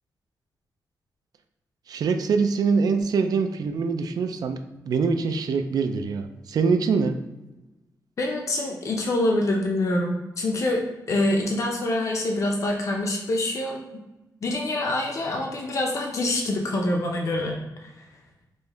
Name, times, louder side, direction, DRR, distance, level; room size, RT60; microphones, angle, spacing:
voice 1, 1.9-4.6 4.9-7.1, right 5 dB, 70° right, 7 dB, 0.4 m, -24 dB
voice 2, 8.2-13.8 14.4-17.6, left 1 dB, 50° left, 1 dB, 0.6 m, -25 dB
5.2 x 2.1 x 3.4 m, 1.0 s
cardioid pair, 100°, 7 cm